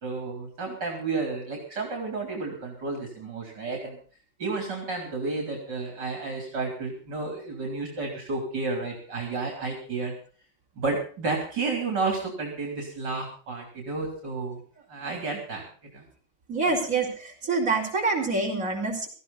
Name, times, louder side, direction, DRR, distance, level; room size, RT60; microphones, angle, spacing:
voice 1, 0.0-4.0 4.4-10.1 10.8-14.6 14.9-15.7 15.9-16.0, right 3 dB, 65° right, 2 dB, 3.9 m, -31 dB
voice 2, 16.5-19.1, right 3 dB, 45° right, -1 dB, 4.5 m, -26 dB
18.0 x 14.5 x 4.0 m, 0.41 s
omnidirectional pair, 2.0 m